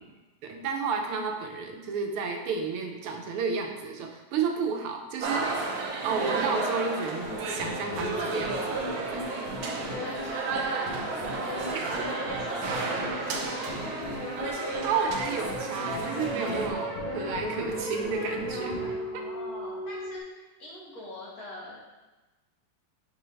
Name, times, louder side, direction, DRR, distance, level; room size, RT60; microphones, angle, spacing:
voice 1, 0.4-8.8 9.1-9.2 11.7-11.9 14.8-19.3, right 5 dB, 85° right, 3 dB, 1.6 m, -32 dB
sound 1, 5.2-16.7, right 3 dB, 70° right, 0.9 m, -33 dB
sound 2, 7.0-18.9, left 2 dB, 65° left, 2.8 m, -38 dB
voice 2, 9.7-14.0 18.9-21.8, left 1 dB, 45° left, -7 dB, 2.0 m, -43 dB
sound 3, 14.6-20.2, right 2 dB, 30° right, 1.3 m, -37 dB
5.5 x 4.4 x 3.9 m, 1.1 s
omnidirectional pair, 2.4 m